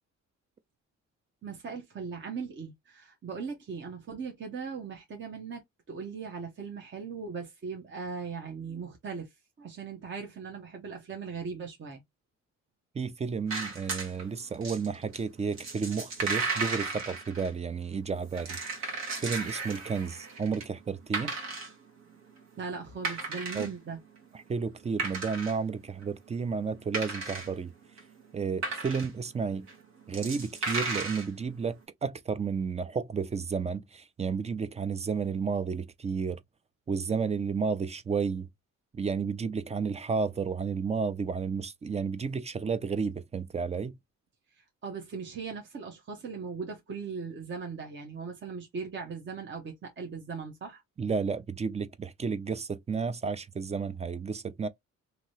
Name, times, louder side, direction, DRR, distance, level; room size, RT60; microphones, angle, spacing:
voice 1, 1.4-9.3 9.6-12.0 22.6-24.0 44.6-50.8, right 5 dB, 40° right, 0.9 m, -39 dB
voice 2, 12.9-18.9 19.2-21.3 23.5-23.7 24.5-27.7 28.3-29.7 30.1-31.8 32.0-36.4 36.9-38.5 38.9-44.0 51.0-54.7, right 5 dB, 20° right, 0.4 m, -32 dB
sound 1, 13.5-14.2 14.5-17.5 18.1-20.6 21.0-21.7 22.4-22.5 22.8-23.8 24.2-24.3 24.7-25.6 25.8-26.0 26.7-27.5 28.0-29.2 29.7-29.8 30.0-31.3, right 3 dB, 60° right, 1.4 m, -35 dB
2.9 x 2.7 x 2.9 m
cardioid pair, 90°, 30 cm